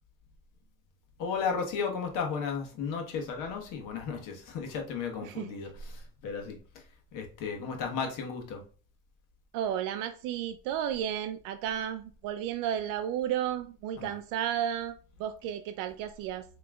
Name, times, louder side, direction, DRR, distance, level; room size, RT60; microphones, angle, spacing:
voice 1, 1.2-6.8 7.1-8.6 14.0-14.1, left 5 dB, 65° left, 1.2 m, -34 dB
voice 2, 9.5-16.5, right 10 dB, 70° right, 0.5 m, -33 dB
5.9 x 3.0 x 2.3 m
cardioid pair, 125°, 34 cm